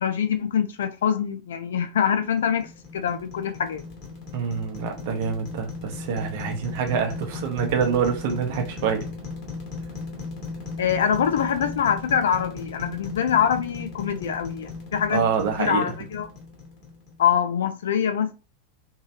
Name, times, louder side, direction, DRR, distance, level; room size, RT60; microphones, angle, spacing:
voice 1, 0.0-3.8 10.8-15.2 15.6-16.3 17.2-18.3, left 8 dB, 60° left, 0.5 m, -24 dB
sound 1, 2.1-17.3, left 3 dB, 40° left, 1.9 m, -37 dB
voice 2, 4.3-9.0 15.1-15.9, right 6 dB, 50° right, 1.0 m, -26 dB
3.5 x 3.2 x 2.9 m
figure-of-eight pair, 90°, 0 cm